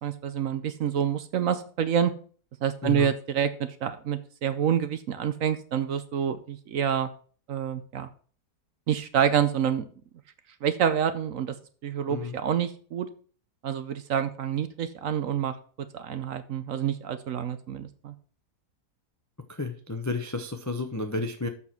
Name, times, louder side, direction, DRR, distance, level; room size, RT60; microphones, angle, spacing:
voice 1, 0.0-2.1 2.6-7.1 7.5-8.1 8.9-9.8 10.6-11.5 11.8-13.1 13.6-15.6 15.9-18.1, right 8 dB, 60° right, 11 dB, 1.0 m, -27 dB
voice 2, 19.5-21.5, left 3 dB, 25° left, 7 dB, 0.4 m, -31 dB
7.4 x 6.2 x 5.9 m, 0.43 s
omnidirectional pair, 1.7 m